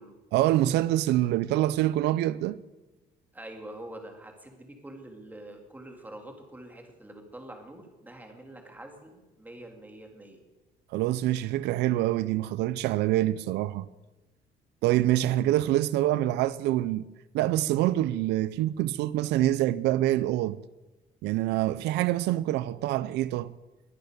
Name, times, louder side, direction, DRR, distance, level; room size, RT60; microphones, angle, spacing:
voice 1, 0.3-2.6 10.9-13.9 14.8-17.1 17.3-20.6 21.2-23.5, right 14 dB, 85° right, 0.5 m, -25 dB
voice 2, 3.3-10.4, right 1 dB, 10° right, 3.1 m, -45 dB
21.5 x 8.0 x 6.8 m
cardioid pair, 110°, 17 cm